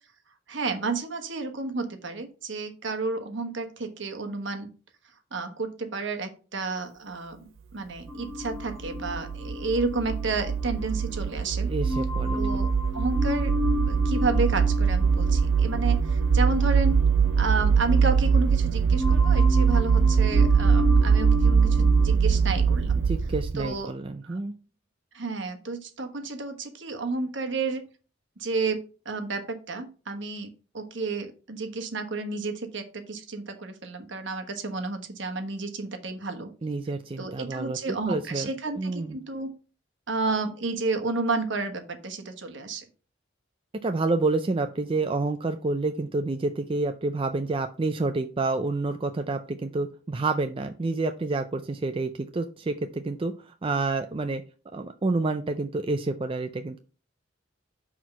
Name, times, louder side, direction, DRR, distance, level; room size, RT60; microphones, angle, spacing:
voice 1, 0.5-4.7 5.3-11.7 12.3-12.7 12.9-13.5 13.9-17.0 17.4-23.0 23.5-23.9 24.2-24.4 25.1-27.8 28.4-28.8 29.0-30.5 30.7-36.5 37.2-39.5 40.1-42.8, right 3 dB, 65° right, 6 dB, 1.3 m, -31 dB
sound 1, 8.1-11.3 11.8-18.6 18.9-22.2, left 3 dB, ahead, 1.2 m, -34 dB
sound 2, 8.4-23.7, right 6 dB, 80° right, 0.5 m, -22 dB
voice 2, 11.6-12.4 23.1-24.5 36.6-38.5 38.8-39.2 43.8-54.4 54.7-56.8, right 3 dB, 25° right, 7 dB, 0.4 m, -29 dB
6.1 x 4.6 x 5.4 m, 0.36 s
head